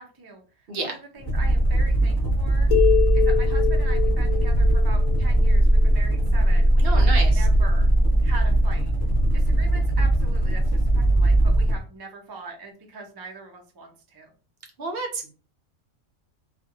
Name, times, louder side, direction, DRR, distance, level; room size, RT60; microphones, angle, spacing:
voice 1, 0.0-2.7 3.1-7.9 8.2-8.9 9.3-14.3, right 3 dB, 40° right, 1 dB, 0.3 m, -41 dB
sound 1, 1.2-11.8, right 1 dB, 20° left, 1.0 m, -19 dB
sound 2, 2.7-6.2, left 12 dB, 85° left, 1.0 m, -26 dB
voice 2, 6.8-7.4 14.8-15.3, right 3 dB, 60° right, 3 dB, 0.7 m, -30 dB
2.5 x 2.4 x 2.7 m, 0.35 s
omnidirectional pair, 1.3 m